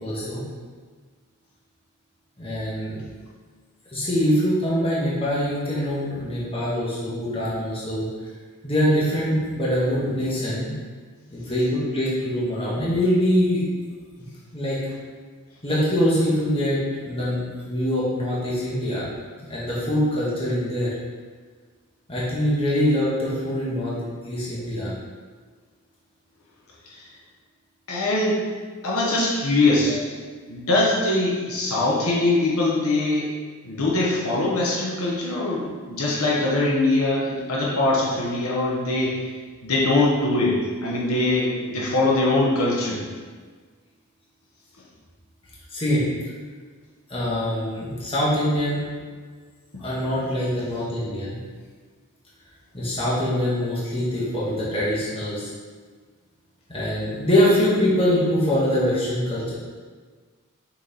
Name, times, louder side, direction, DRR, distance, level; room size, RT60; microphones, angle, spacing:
voice 1, 0.0-0.4 2.4-3.0 3.9-8.1 8.6-10.7 11.3-13.6 14.5-14.8 15.6-19.1 19.5-20.9 22.1-23.9 24.2-24.9 29.9-30.0 45.7-46.0 47.1-48.8 49.8-51.4 52.7-55.5 56.7-59.5, equal, 25° left, -8 dB, 1.5 m, -23 dB
voice 2, 27.9-28.5 28.8-30.0 30.5-33.3 33.6-39.2 39.6-43.0 49.7-49.9, left 2 dB, 80° left, -4 dB, 1.1 m, -22 dB
5.9 x 4.5 x 4.2 m, 1.5 s
head